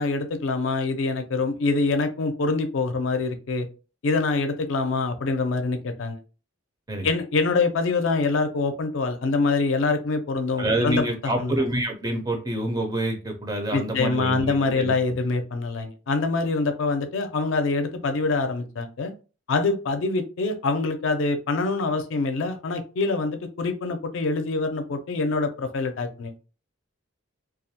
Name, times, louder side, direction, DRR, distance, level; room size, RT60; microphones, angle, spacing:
voice 1, 0.0-3.7 4.0-6.2 7.0-11.0 11.4-11.6 13.7-19.1 19.5-26.3, left 3 dB, 75° left, 7 dB, 0.4 m, -25 dB
voice 2, 10.6-14.9, right 1 dB, 20° right, 3 dB, 0.4 m, -27 dB
2.3 x 2.1 x 2.7 m, 0.33 s
head